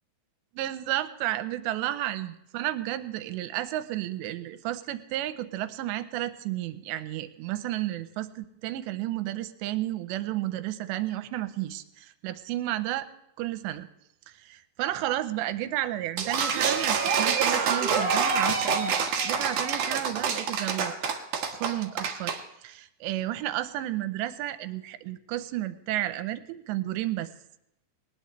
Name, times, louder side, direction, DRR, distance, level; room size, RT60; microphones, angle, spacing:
voice 1, 0.6-13.1 13.4-13.9 14.4-21.0 21.5-27.3, right 14 dB, 90° right, 11 dB, 3.0 m, -32 dB
sound 1, 16.2-22.4, right 6 dB, 60° right, 1.8 m, -26 dB
20.0 x 19.5 x 3.2 m, 0.80 s
omnidirectional pair, 5.0 m